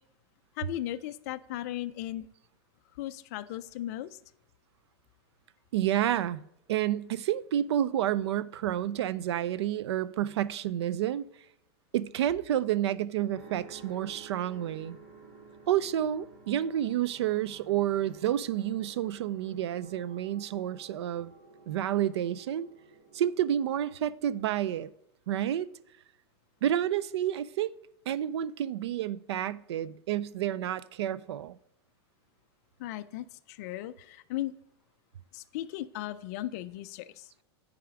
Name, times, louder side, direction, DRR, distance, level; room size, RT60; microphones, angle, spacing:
voice 1, 0.6-2.3 3.0-4.1 32.8-34.5 35.3-37.3, left 14 dB, 40° left, 0.4 m, -37 dB
voice 2, 5.7-6.4 6.7-11.3 11.9-15.0 15.7-21.3 21.7-22.7 23.1-24.9 25.3-25.7 26.6-27.7 28.1-31.6, right 11 dB, 75° right, 0.4 m, -29 dB
sound 1, 13.3-24.0, right 4 dB, 50° right, 1.8 m, -53 dB
9.5 x 4.9 x 4.8 m
supercardioid pair, 170°, 14 cm